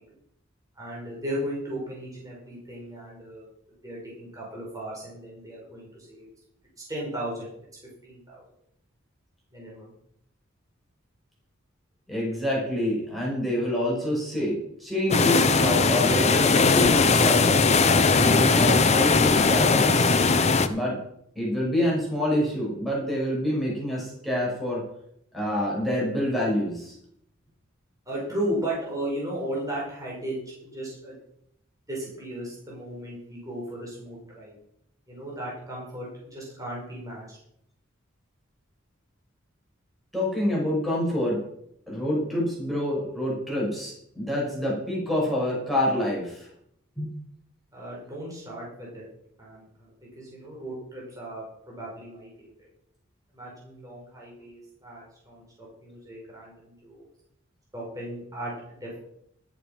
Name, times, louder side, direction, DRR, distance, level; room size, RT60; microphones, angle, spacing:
voice 1, 0.7-3.5 3.8-6.3 6.9-7.5 8.0-8.4 9.5-9.9 28.0-31.2 31.9-34.5 35.1-37.4 47.7-49.0 49.4-52.7 53.3-57.0 57.7-59.0, right 1 dB, 15° right, -4 dB, 5.1 m, -36 dB
voice 2, 12.1-17.6 18.2-20.1 20.7-21.0 21.3-24.8 25.3-27.0 40.1-41.4 41.9-46.5 47.0-47.1, left 1 dB, ahead, -5 dB, 6.0 m, -27 dB
sound 1, 15.1-20.7, left 4 dB, 35° left, 0.9 m, -19 dB
12.5 x 11.0 x 5.3 m, 0.72 s
head